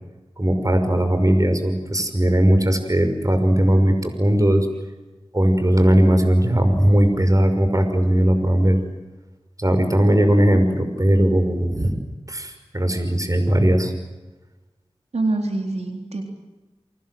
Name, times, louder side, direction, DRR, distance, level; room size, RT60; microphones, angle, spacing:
voice 1, 0.4-4.7 5.3-8.8 9.6-12.0 12.3-13.9, right 1 dB, 30° right, 7 dB, 5.8 m, -18 dB
voice 2, 15.1-16.2, right 2 dB, 85° right, 3 dB, 3.8 m, -25 dB
30.0 x 24.0 x 7.9 m, 1.1 s
wide cardioid pair, 45°, 11 cm